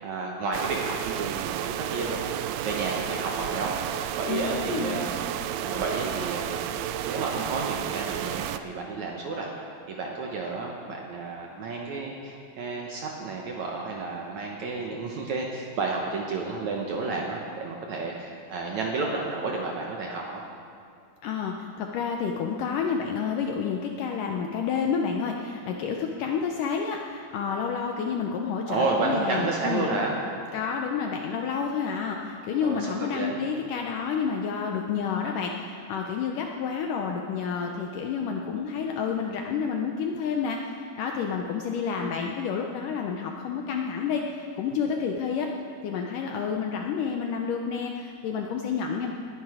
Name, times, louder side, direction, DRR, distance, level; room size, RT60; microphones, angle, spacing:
voice 1, 0.0-5.2 5.6-6.7 7.1-9.5 9.9-20.4 28.7-30.1 32.6-33.4, right 3 dB, 65° right, -1 dB, 1.9 m, -31 dB
sound 1, 0.5-8.6, right 11 dB, 85° right, 2.5 m, -32 dB
voice 2, 4.3-5.1 21.2-29.9 30.5-45.5 45.8-49.1, left 6 dB, 75° left, 2 dB, 2.0 m, -29 dB
20.0 x 10.5 x 4.9 m, 2.4 s
omnidirectional pair, 4.5 m